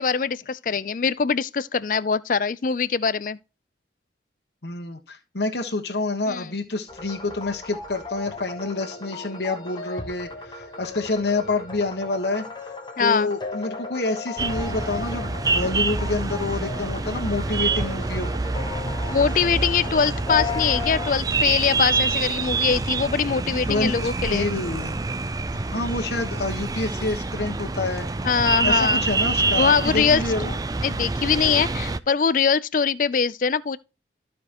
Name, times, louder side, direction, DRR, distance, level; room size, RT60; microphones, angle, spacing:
voice 1, 0.0-3.4 6.3-6.5 13.0-13.3 19.1-24.5 28.2-29.0 29.5-30.2 30.8-33.8, left 6 dB, 45° left, 0.4 m, -22 dB
voice 2, 4.6-12.4 13.0-18.3 23.7-23.9 24.3-25.0 25.5-28.1 28.6-30.6, left 3 dB, 65° left, 1.3 m, -28 dB
sound 1, 6.9-21.2, left 4 dB, 25° left, 1.2 m, -36 dB
sound 2, 14.4-32.0, right 3 dB, 20° right, 0.4 m, -26 dB
14.5 x 5.1 x 3.0 m
head